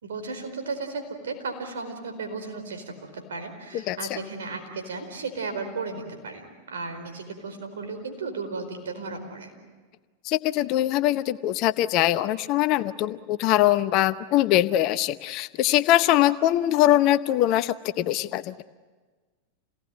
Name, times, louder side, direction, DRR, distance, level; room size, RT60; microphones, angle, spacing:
voice 1, 0.0-9.5, right 4 dB, 65° right, 6 dB, 4.6 m, -35 dB
voice 2, 3.9-4.2 10.2-18.6, left 14 dB, 40° left, 14 dB, 0.8 m, -22 dB
28.5 x 18.0 x 9.2 m, 1.4 s
figure-of-eight pair, 90°, 0 cm